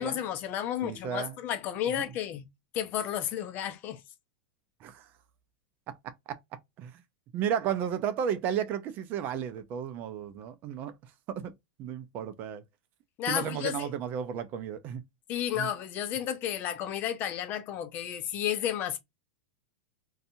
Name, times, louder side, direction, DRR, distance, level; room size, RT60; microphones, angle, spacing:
voice 1, 0.0-2.5 2.7-4.0 13.2-13.9 15.3-19.0, left 10 dB, 40° left, 0.6 m, -32 dB
voice 2, 0.8-1.4 2.0-2.1 4.8-5.1 5.9-6.0 6.3-6.4 6.8-7.0 7.3-10.9 11.3-11.5 11.8-12.6 13.3-15.0 15.6-15.7, right 8 dB, 40° right, 0.5 m, -33 dB
2.6 x 2.3 x 2.6 m
supercardioid pair, 130°, 5 cm